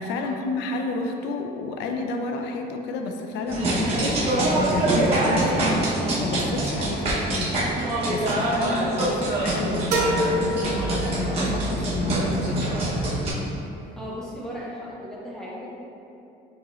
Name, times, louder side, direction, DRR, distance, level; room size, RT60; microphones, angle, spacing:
voice 1, 0.0-7.6 8.1-13.0, left 3 dB, 80° left, 4 dB, 0.4 m, -30 dB
sound 1, 3.5-13.3, right 1 dB, 35° right, 1.0 m, -24 dB
sound 2, 9.9-11.7, right 1 dB, 70° right, 0.7 m, -26 dB
voice 2, 14.0-15.8, equal, 5° left, -6 dB, 0.7 m, -36 dB
6.7 x 2.9 x 2.4 m, 2.8 s
cardioid pair, 160°, 18 cm